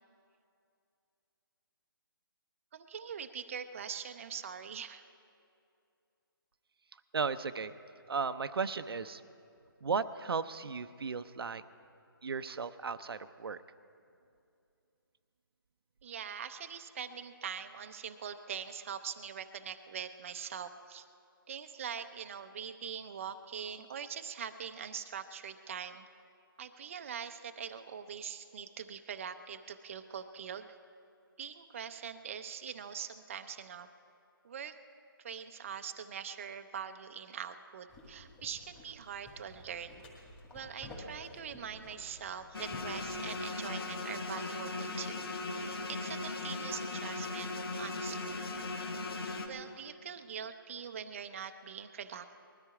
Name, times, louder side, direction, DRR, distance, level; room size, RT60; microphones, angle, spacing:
voice 1, 2.7-5.0 16.0-21.1 21.5-26.1 26.6-30.8 31.4-33.9 34.4-34.8 35.2-40.0 40.5-48.4 49.4-52.4, right 7 dB, 35° right, 8 dB, 0.6 m, -43 dB
voice 2, 7.1-7.7 8.1-9.2 9.8-11.6 12.2-13.6, right 5 dB, 80° right, 11 dB, 0.7 m, -35 dB
sound 1, 37.9-43.4, left 1 dB, 10° left, 1.9 m, -52 dB
sound 2, 42.5-49.5, left 3 dB, 85° left, 1.7 m, -38 dB
20.5 x 13.0 x 4.8 m, 2.6 s
hypercardioid pair, 165°, 12 cm